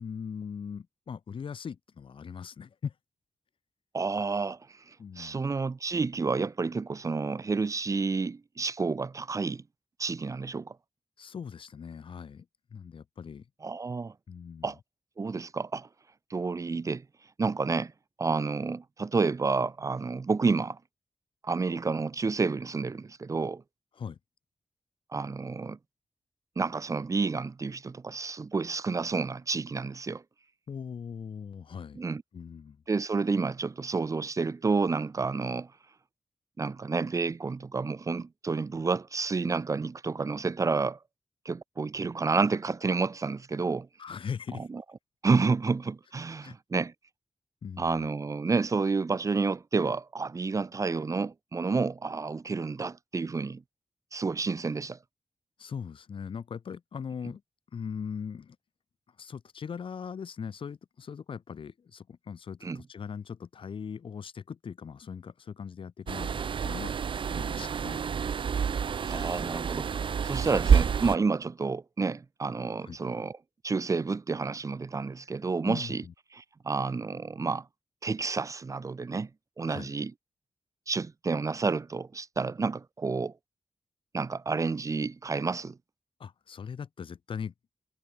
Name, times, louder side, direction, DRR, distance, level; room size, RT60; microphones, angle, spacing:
voice 1, 0.0-2.9 5.0-5.4 11.2-12.5 12.7-13.5 14.3-14.7 24.0-24.2 30.7-32.0 32.3-32.8 44.0-44.7 46.4-46.6 47.6-48.1 55.6-57.4 57.7-58.6 59.2-66.3 66.6-68.0 69.1-69.7 72.8-73.0 75.6-76.1 79.7-79.9 86.2-87.7, left 6 dB, 70° left, 7.6 m, -40 dB
voice 2, 3.9-4.6 4.9-9.6 10.0-10.8 13.6-14.1 14.6-14.8 15.2-15.9 16.3-17.0 17.4-17.9 18.2-20.8 21.4-23.6 25.1-25.8 26.6-30.2 31.9-32.2 32.9-35.7 36.6-41.0 41.5-43.9 44.6-44.8 45.2-46.9 47.8-53.6 54.1-55.0 62.6-62.8 69.0-70.0 70.2-73.4 73.6-76.0 76.3-77.7 78.0-79.3 79.6-80.1 80.9-83.3 84.1-85.8, right 4 dB, 35° right, 2.0 m, -30 dB
sound 1, 66.1-71.2, right 7 dB, 65° right, 1.5 m, -28 dB
wide cardioid pair, 160°, 9 cm